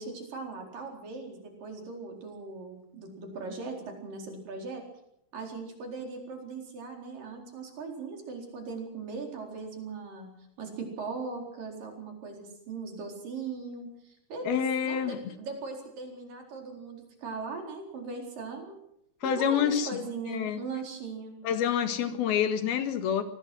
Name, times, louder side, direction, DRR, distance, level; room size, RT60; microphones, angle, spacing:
voice 1, 0.0-4.9 5.3-10.3 10.6-18.8 19.2-21.4, right 4 dB, 65° right, 2 dB, 5.9 m, -39 dB
voice 2, 14.5-15.2 19.2-19.9 20.3-20.6 21.4-23.2, left 8 dB, 85° left, 8 dB, 3.7 m, -27 dB
25.0 x 19.0 x 6.2 m, 0.76 s
omnidirectional pair, 4.3 m